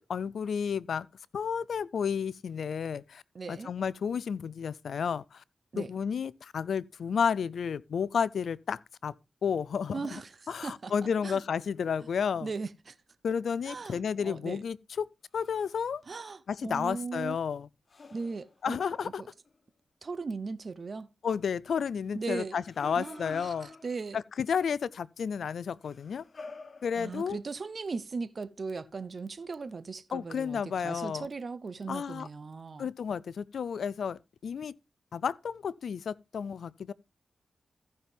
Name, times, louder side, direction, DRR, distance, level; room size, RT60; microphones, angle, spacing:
voice 1, 0.1-1.1 1.3-3.2 3.5-5.4 5.8-9.1 9.4-10.2 10.5-12.5 13.2-15.1 15.3-16.0 16.5-17.7 18.6-19.2 21.2-23.7 24.1-26.2 26.8-27.4 30.1-31.3 31.9-32.3 32.8-34.7 35.1-36.9, left 7 dB, 75° left, 0.4 m, -32 dB
voice 2, 3.3-3.7 5.7-5.9 9.9-10.3 10.6-10.9 11.2-11.4 12.4-13.0 13.7-14.6 16.1-17.4 18.1-18.8 19.0-19.3 20.0-21.1 22.1-22.6 23.0-24.2 27.0-32.9, right 4 dB, 55° right, 0.7 m, -38 dB
sound 1, 10.9-12.3 15.3-15.8 17.9-19.6 22.5-24.3 25.8-27.6, left 3 dB, 55° left, 0.9 m, -51 dB
15.0 x 5.9 x 3.5 m
cardioid pair, 45°, 0 cm